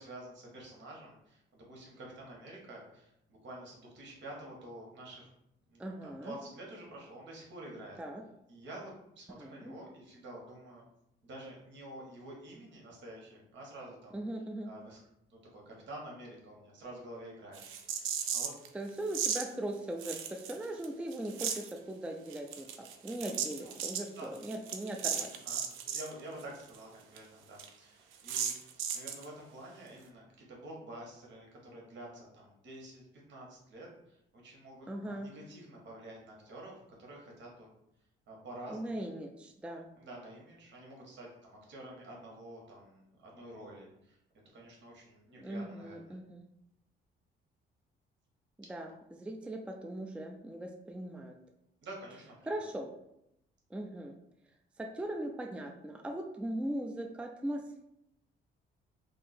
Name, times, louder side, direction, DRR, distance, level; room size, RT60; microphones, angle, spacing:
voice 1, 0.0-5.3 5.7-8.0 8.5-10.8 11.2-14.2 14.6-15.0 15.3-17.6 17.9-18.7 23.6-24.3 25.4-25.6 25.9-28.6 28.9-37.7 38.3-39.0 40.0-44.2 44.5-46.1 51.8-52.5, right 1 dB, 65° right, -2 dB, 1.4 m, -49 dB
voice 2, 5.8-6.4 8.0-8.2 9.4-9.6 14.1-14.7 18.7-22.7 23.0-25.3 34.9-35.3 38.7-39.9 45.4-46.5 48.7-51.3 52.4-52.9 53.7-54.1 54.8-57.8, right 1 dB, 5° right, 3 dB, 0.4 m, -39 dB
sound 1, 17.5-18.7 19.1-19.4 20.0-20.8 21.1-21.7 22.3-26.1 26.4-26.5 26.7-26.8 27.2-27.3 27.6-27.7 28.3-29.3, right 8 dB, 90° right, 0.5 m, -35 dB
2.8 x 2.7 x 4.2 m, 0.80 s
cardioid pair, 90°, 20 cm